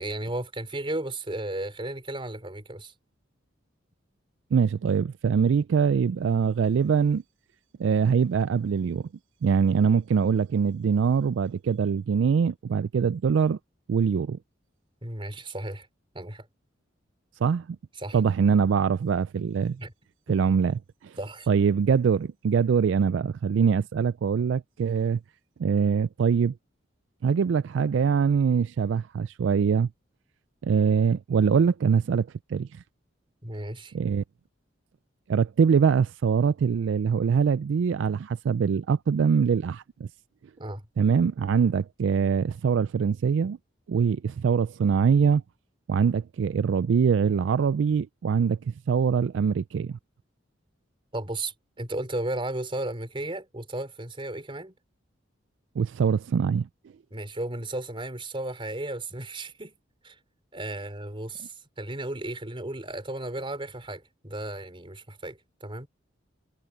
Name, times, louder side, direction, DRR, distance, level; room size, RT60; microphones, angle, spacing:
voice 1, 0.0-2.9 15.0-15.9 16.1-16.5 18.0-18.2 19.8-19.9 21.2-21.5 33.4-33.9 40.6-40.8 51.1-54.7 57.1-59.7 60.0-60.2 60.5-65.9, right 1 dB, 25° right, 4.1 m, -34 dB
voice 2, 4.5-7.2 7.8-9.1 9.4-13.6 13.9-14.4 17.4-17.7 18.1-19.8 20.3-21.2 21.5-25.2 25.6-26.5 27.2-29.9 30.6-32.8 33.9-34.2 35.3-40.1 41.0-43.6 43.9-45.4 45.9-50.0 55.8-56.7, right 6 dB, 70° right, 0.3 m, -23 dB
head